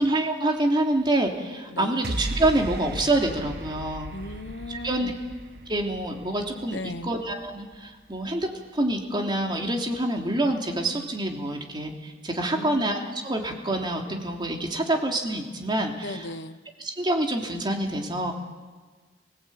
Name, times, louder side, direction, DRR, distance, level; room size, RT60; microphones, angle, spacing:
voice 1, 0.0-4.1 4.7-5.1 5.7-16.3 16.8-18.3, right 1 dB, 25° right, 1 dB, 3.2 m, -26 dB
voice 2, 1.7-2.0 4.1-5.2 6.7-7.2 12.5-12.9 16.0-16.6, left 2 dB, 75° left, 10 dB, 1.3 m, -37 dB
sound 1, 2.0-8.5, right 1 dB, 60° right, 1.3 m, -37 dB
29.0 x 17.5 x 8.8 m, 1.4 s
head